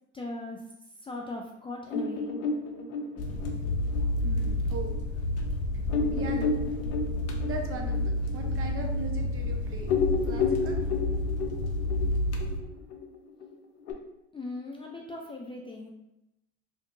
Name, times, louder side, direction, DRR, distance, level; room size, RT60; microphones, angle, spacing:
voice 1, 0.1-0.7 1.0-2.3 14.3-15.9, left 2 dB, 15° left, -1 dB, 0.3 m, -38 dB
sound 1, 1.9-5.0 5.4-5.5 5.9-9.5 9.8-13.9, left 4 dB, 90° left, 0.5 m, -32 dB
sound 2, 3.2-12.6, left 1 dB, 45° left, 0.6 m, -30 dB
voice 2, 4.1-4.9 6.1-6.6 7.4-9.9 10.2-10.8 12.4-12.5, right 3 dB, 40° right, 2 dB, 0.7 m, -39 dB
2.7 x 2.6 x 2.5 m, 0.89 s
hypercardioid pair, 75°, 34 cm